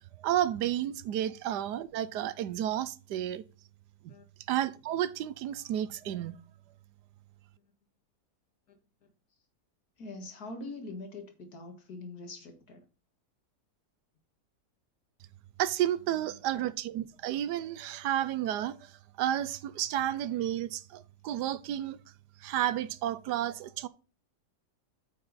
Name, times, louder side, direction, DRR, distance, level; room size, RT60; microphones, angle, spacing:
voice 1, 0.2-3.4 4.5-6.4 15.6-18.9 19.2-22.0 22.4-23.9, right 11 dB, 85° right, 1.3 m, -31 dB
voice 2, 10.0-12.8, left 2 dB, 70° left, 2.2 m, -43 dB
8.7 x 5.6 x 4.0 m
omnidirectional pair, 1.7 m